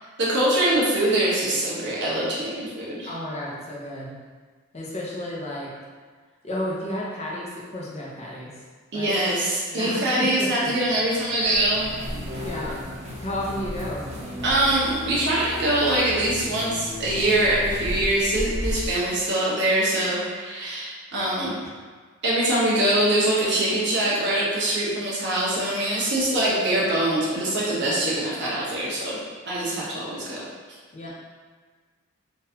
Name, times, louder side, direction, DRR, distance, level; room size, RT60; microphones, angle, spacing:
voice 1, 0.2-3.1 8.9-11.9 14.4-21.5 22.2-29.2 29.5-30.4, right 1 dB, 60° right, -7 dB, 1.0 m, -23 dB
voice 2, 3.1-4.2 4.7-5.7 6.4-8.6 8.9-9.2 9.7-10.7 12.4-14.1 29.7-29.8 30.9-31.1, left 1 dB, 30° left, -5 dB, 0.7 m, -32 dB
sound 1, 10.7-18.9, equal, 30° right, 0.6 m, -34 dB
3.7 x 2.6 x 2.8 m, 1.5 s
head